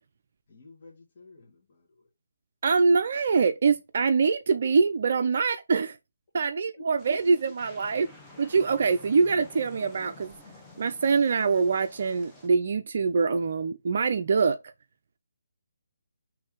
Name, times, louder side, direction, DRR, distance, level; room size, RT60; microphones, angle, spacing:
voice 1, 0.5-2.1 5.2-5.3 6.8-6.9, left 3 dB, 40° left, 1.6 m, -51 dB
voice 2, 2.6-6.0 6.3-8.1 8.4-10.3 10.8-14.6, right 5 dB, 50° right, 0.3 m, -24 dB
sound 1, 7.0-12.5, left 2 dB, 5° left, 0.9 m, -50 dB
3.5 x 3.1 x 4.6 m
figure-of-eight pair, 145°, 0 cm